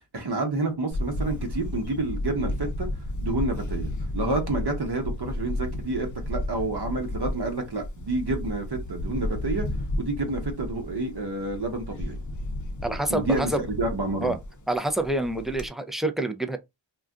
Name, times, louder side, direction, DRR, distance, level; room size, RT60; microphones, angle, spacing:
voice 1, 0.1-2.9 3.2-9.7 10.0-12.2 13.1-14.3, right 2 dB, 55° right, 0.9 m, -29 dB
Camera, 0.9-15.7, left 1 dB, 40° left, 0.6 m, -33 dB
voice 2, 12.8-13.6 14.2-14.4 14.7-16.6, right 1 dB, ahead, 0.4 m, -27 dB
2.4 x 2.2 x 3.6 m
wide cardioid pair, 55°, 47 cm